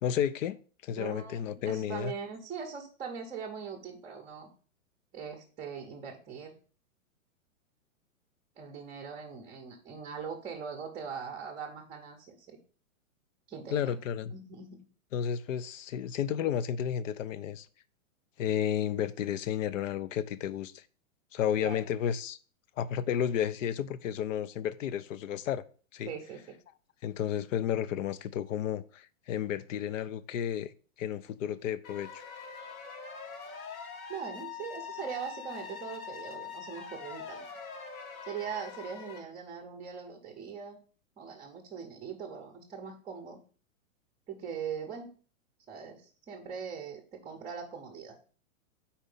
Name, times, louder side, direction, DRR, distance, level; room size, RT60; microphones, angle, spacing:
voice 1, 0.0-2.1 13.7-14.3 15.1-17.7 18.4-20.8 21.3-22.4 22.8-25.6 25.9-26.1 27.0-30.7 31.0-32.2, left 9 dB, 65° left, 0.6 m, -32 dB
voice 2, 0.9-4.5 5.1-6.6 8.6-12.6 13.5-14.0 14.3-14.9 21.6-21.8 26.1-26.6 34.1-37.4 38.3-40.8 41.2-43.4 44.3-45.1 45.7-48.3, right 6 dB, 15° right, 0.7 m, -41 dB
sound 1, 31.8-39.2, left 6 dB, 90° left, 1.5 m, -43 dB
4.4 x 4.3 x 5.3 m
hypercardioid pair, 140°, 41 cm